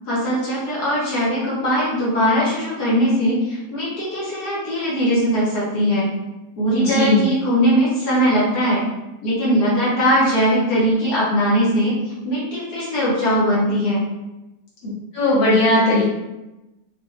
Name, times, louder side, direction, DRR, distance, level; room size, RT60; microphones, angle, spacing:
voice 1, 0.0-6.1 6.6-8.8 9.2-11.9 12.2-14.0, equal, 75° left, -7 dB, 1.7 m, -20 dB
voice 2, 6.7-7.2 15.1-16.0, left 1 dB, 35° left, -8 dB, 1.3 m, -17 dB
4.4 x 2.5 x 2.6 m, 0.99 s
omnidirectional pair, 1.7 m